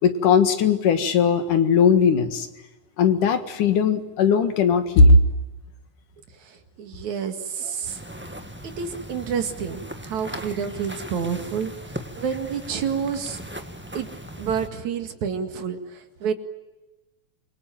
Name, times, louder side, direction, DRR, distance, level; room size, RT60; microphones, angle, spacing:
voice 1, 0.0-2.5 3.0-5.2, left 5 dB, 75° left, 8 dB, 3.3 m, -18 dB
voice 2, 6.4-8.0 8.6-13.4 13.9-16.3, right 7 dB, 65° right, 7 dB, 3.3 m, -29 dB
sound 1, 7.8-14.7, equal, 5° right, 0.8 m, -38 dB
27.0 x 23.5 x 9.0 m, 1.1 s
omnidirectional pair, 3.6 m